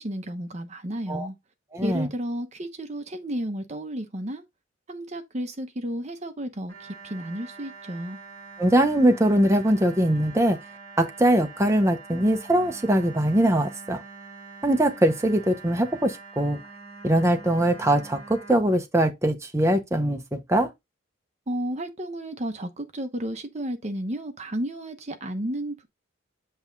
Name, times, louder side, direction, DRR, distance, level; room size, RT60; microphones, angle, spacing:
voice 1, 0.0-1.4 1.8-4.4 4.9-8.2 21.5-25.9, right 1 dB, 35° right, 0.9 m, -32 dB
voice 2, 1.7-2.1 8.6-10.6 11.0-14.0 14.6-16.6 17.0-20.7, right 1 dB, 15° right, 1.0 m, -22 dB
sound 1, 6.7-18.6, right 4 dB, 50° right, 3.8 m, -44 dB
8.0 x 3.5 x 4.0 m
head